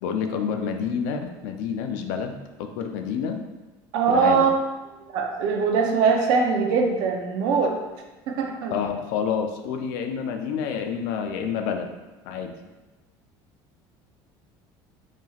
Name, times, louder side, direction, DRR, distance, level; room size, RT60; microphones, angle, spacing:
voice 1, 0.0-3.4 4.1-4.5 8.7-11.9 12.3-12.6, left 7 dB, 90° left, 5 dB, 0.4 m, -28 dB
voice 2, 3.9-4.5 5.1-7.8 8.3-8.7, right 5 dB, 55° right, 2 dB, 0.5 m, -22 dB
4.1 x 3.0 x 2.3 m, 1.1 s
cardioid pair, 175°, 9 cm